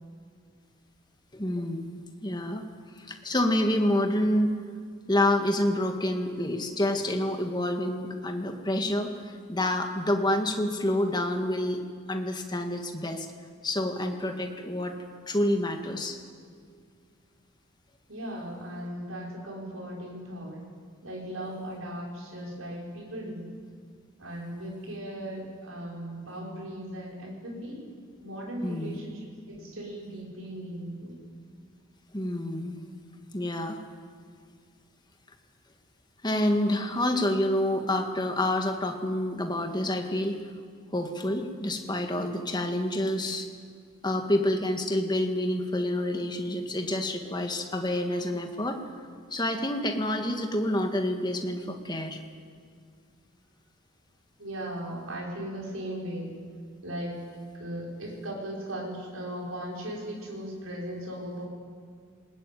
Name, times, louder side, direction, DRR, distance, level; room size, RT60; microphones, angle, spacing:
voice 1, 1.3-2.6 3.0-4.6 5.1-11.8 12.1-13.3 13.6-14.9 15.3-16.2 28.6-29.0 32.1-32.8 33.3-33.8 36.2-40.4 40.9-43.5 44.0-48.8 49.3-52.2, left 1 dB, 20° left, 5 dB, 1.9 m, -28 dB
voice 2, 18.1-20.6 21.0-23.5 24.2-27.9 28.2-31.3 54.4-56.4 56.8-57.2 57.5-61.5, right 1 dB, 80° right, -2 dB, 5.6 m, -37 dB
20.5 x 20.0 x 9.4 m, 2.1 s
head